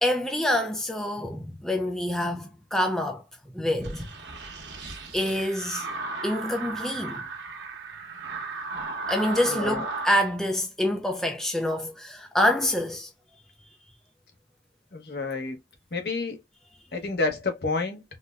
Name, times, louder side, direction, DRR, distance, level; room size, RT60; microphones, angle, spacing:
voice 1, 0.0-3.2 3.5-4.1 5.1-5.9 6.2-7.2 9.1-13.1 13.6-13.8, left 1 dB, ahead, 0.3 m, -26 dB
sound 1, 3.8-10.2, right 3 dB, 90° right, 1.1 m, -35 dB
voice 2, 9.5-9.8 14.9-15.6 15.9-16.4 16.9-18.0, left 3 dB, 60° left, 0.9 m, -29 dB
4.0 x 2.1 x 2.4 m
head